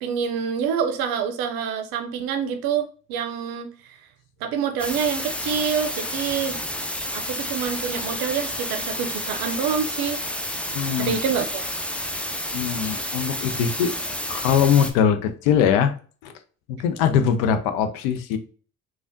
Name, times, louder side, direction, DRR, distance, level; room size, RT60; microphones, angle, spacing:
voice 1, 0.0-4.0 4.4-6.6 7.1-10.2 11.0-11.6, right 7 dB, 65° right, 6 dB, 0.6 m, -26 dB
sound 1, 4.8-14.9, left 1 dB, 5° left, 0.4 m, -30 dB
voice 2, 10.7-11.1 12.5-15.9 16.2-16.3 16.7-18.4, left 8 dB, 75° left, 9 dB, 0.5 m, -22 dB
3.3 x 2.3 x 2.5 m, 0.40 s
hypercardioid pair, 50°, 39 cm